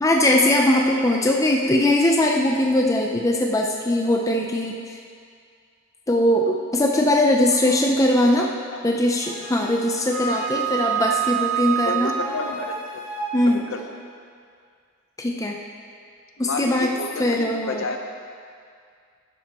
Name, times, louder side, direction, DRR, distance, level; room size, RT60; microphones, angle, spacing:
voice 1, 0.0-5.0 6.1-8.5 8.8-12.2 13.3-13.6 15.2-15.6 16.4-16.9 17.2-17.8, left 1 dB, 15° left, 0 dB, 0.5 m, -20 dB
Wind instrument woodwind instrument, 9.2-13.3, right 9 dB, 20° right, 1.5 m, -27 dB
voice 2, 11.8-13.0 13.4-13.8 16.4-18.1, left 3 dB, 60° left, 4 dB, 0.8 m, -31 dB
12.0 x 10.5 x 3.0 m, 2.2 s
head